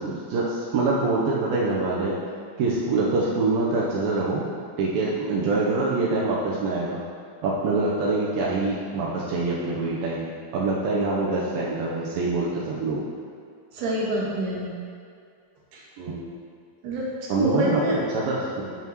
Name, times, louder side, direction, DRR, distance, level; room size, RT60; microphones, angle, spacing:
voice 1, 0.0-2.2 2.6-4.4 4.8-7.0 7.4-10.3 10.5-13.0 16.0-16.2 17.3-18.8, right 3 dB, 75° right, -5 dB, 2.1 m, -25 dB
voice 2, 13.7-14.7 15.7-15.8 16.8-18.0, right 1 dB, 55° right, -6 dB, 2.7 m, -26 dB
15.5 x 5.8 x 3.1 m, 2.2 s
omnidirectional pair, 5.2 m